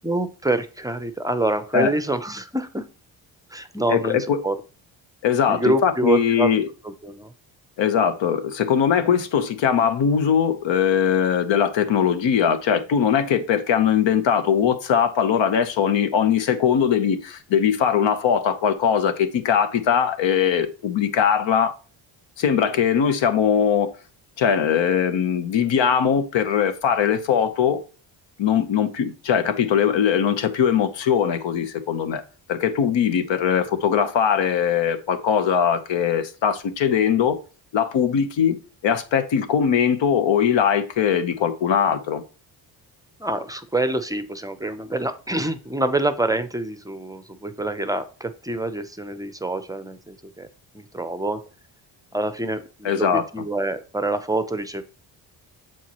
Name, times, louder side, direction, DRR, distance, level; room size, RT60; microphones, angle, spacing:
voice 1, 0.0-2.9 3.5-4.6 5.5-6.5 6.8-7.3 43.2-50.5 50.7-51.4 52.1-54.8, right 2 dB, 10° right, 0.6 m, -26 dB
voice 2, 3.9-4.4 5.2-6.7 7.8-21.7 22.4-23.9 24.4-27.8 28.4-32.2 32.5-37.4 37.7-38.6 38.8-42.2 52.8-53.2, left 8 dB, 65° left, 1.0 m, -21 dB
7.4 x 4.6 x 3.0 m
cardioid pair, 75°, 49 cm